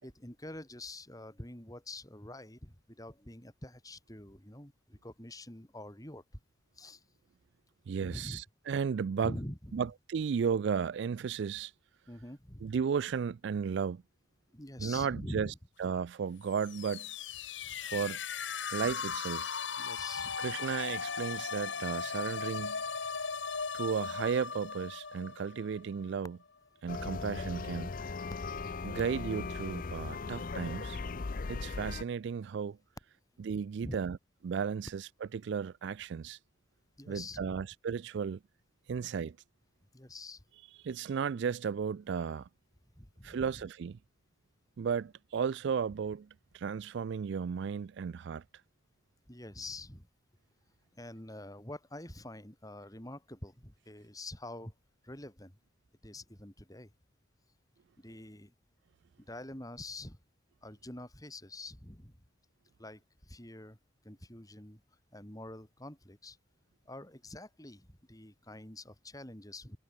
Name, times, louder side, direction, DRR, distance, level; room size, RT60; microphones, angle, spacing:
voice 1, 0.0-6.4 6.7-7.0 8.0-8.4 9.2-9.9 12.1-12.6 14.5-15.6 19.8-20.4 33.8-34.0 37.0-37.6 39.0-39.1 39.9-40.4 43.0-43.5 49.3-50.1 50.9-54.7 55.0-55.6 56.0-56.9 58.0-58.5 59.2-60.2 60.6-62.2 62.8-63.8 64.0-64.8 65.1-66.4 66.9-69.8, left 1 dB, 20° left, 4.7 m, -46 dB
voice 2, 7.9-9.3 9.7-11.7 12.6-14.0 14.8-15.5 15.8-17.1 17.8-18.2 18.7-19.6 20.4-22.8 23.7-26.4 26.8-27.9 28.8-31.0 31.5-32.8 33.4-34.2 34.4-36.4 37.1-38.4 38.9-39.4 40.8-42.5 43.2-44.0 44.8-46.3 46.5-48.4, right 6 dB, 60° right, 0.3 m, -34 dB
sound 1, 16.5-26.2, left 6 dB, 65° left, 1.5 m, -38 dB
sound 2, 26.9-32.0, left 4 dB, 45° left, 0.5 m, -38 dB
head